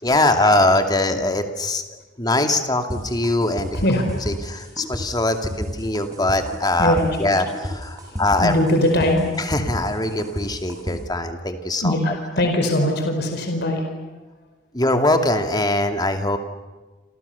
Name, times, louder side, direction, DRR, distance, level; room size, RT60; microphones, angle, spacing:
voice 1, 0.0-3.7 4.3-8.5 9.4-12.1 14.7-16.4, left 2 dB, 20° left, 6 dB, 2.5 m, -22 dB
sound 1, 2.9-11.0, equal, 20° right, 6.6 m, -30 dB
voice 2, 3.7-4.1 6.8-7.3 8.0-9.3 11.8-13.8, left 1 dB, 55° left, 3 dB, 4.9 m, -21 dB
28.5 x 28.5 x 7.0 m, 1.2 s
head